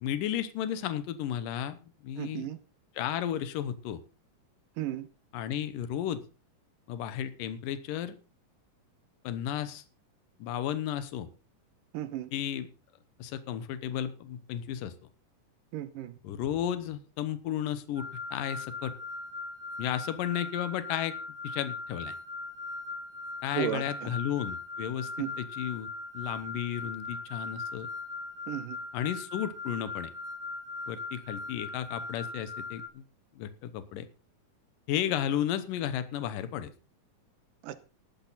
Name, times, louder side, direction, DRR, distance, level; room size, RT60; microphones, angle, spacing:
voice 1, 0.0-2.5 3.0-4.0 5.3-6.2 6.9-8.2 9.2-9.8 10.4-11.3 12.3-12.7 13.2-14.9 16.2-18.9 19.8-21.1 21.4-22.1 23.4-25.1 25.4-25.9 26.1-27.9 28.9-30.1 30.9-33.0 33.4-34.1 34.9-36.7, left 10 dB, 80° left, 2.7 m, -33 dB
voice 2, 2.2-2.6 4.8-5.1 11.9-12.3 15.7-16.2 23.6-24.1 25.2-25.3 28.5-28.8 37.6-37.8, right 11 dB, 90° right, 2.7 m, -34 dB
sound 1, 17.9-32.9, left 3 dB, 10° left, 0.5 m, -39 dB
14.5 x 12.0 x 4.1 m
omnidirectional pair, 3.8 m